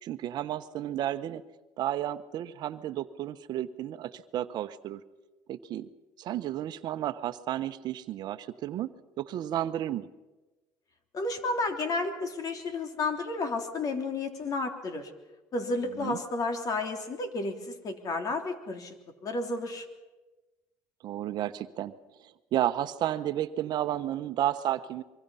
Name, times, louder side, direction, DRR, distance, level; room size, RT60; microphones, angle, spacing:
voice 1, 0.0-1.4 1.8-5.0 5.5-5.9 6.2-8.9 9.2-10.1 15.9-16.2 21.0-25.0, right 12 dB, 60° right, 11 dB, 1.0 m, -32 dB
voice 2, 11.1-15.1 15.5-18.9 19.2-19.9, left 3 dB, 50° left, 6 dB, 3.3 m, -32 dB
24.5 x 24.0 x 5.6 m, 1.2 s
supercardioid pair, 80°, 8 cm